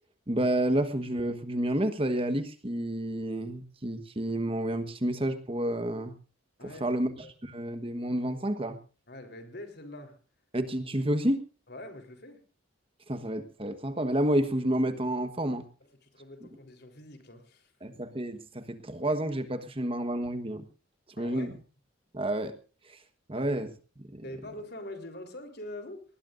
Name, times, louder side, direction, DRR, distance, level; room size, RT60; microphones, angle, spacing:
voice 1, 0.3-6.1 6.6-7.1 7.4-8.8 10.5-11.4 13.1-15.6 17.8-20.7 21.2-21.5 22.1-22.6 22.9-23.0 23.3-23.7 24.0-24.2, right 1 dB, 25° right, 1.3 m, -30 dB
voice 2, 9.1-10.2 11.7-12.4 16.0-17.7 21.2-21.6 23.3-23.5 24.2-26.0, left 1 dB, 50° left, 3.8 m, -44 dB
20.5 x 20.0 x 2.6 m
head